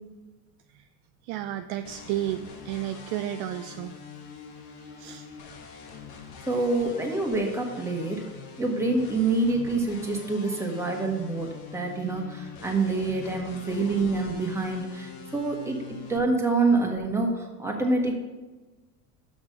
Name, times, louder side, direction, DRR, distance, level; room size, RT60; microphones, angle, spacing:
voice 1, 1.2-3.9 5.0-5.3, right 12 dB, 50° right, 8 dB, 0.5 m, -32 dB
sound 1, 1.8-16.2, left 6 dB, 45° left, 1.5 m, -44 dB
voice 2, 6.5-8.2 8.6-15.8 16.1-18.2, right 3 dB, 5° right, 0 dB, 1.5 m, -26 dB
6.3 x 6.1 x 6.4 m, 1.2 s
supercardioid pair, 105°, 49 cm